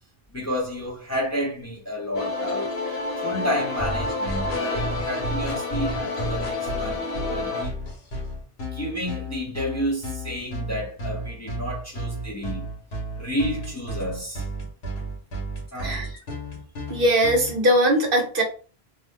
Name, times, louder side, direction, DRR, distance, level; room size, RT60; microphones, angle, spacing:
voice 1, 0.3-2.8 3.2-7.8 8.7-12.7 13.2-14.5 15.7-16.0, equal, 15° left, 0.7 m, -30 dB
sound 1, 2.1-7.6, left 3 dB, 70° left, 0.8 m, -29 dB
sound 2, 3.8-17.6, right 1 dB, 90° left, 1.3 m, -32 dB
voice 2, 16.9-18.4, right 1 dB, 60° right, 1.0 m, -20 dB
2.7 x 2.1 x 3.4 m
omnidirectional pair, 1.0 m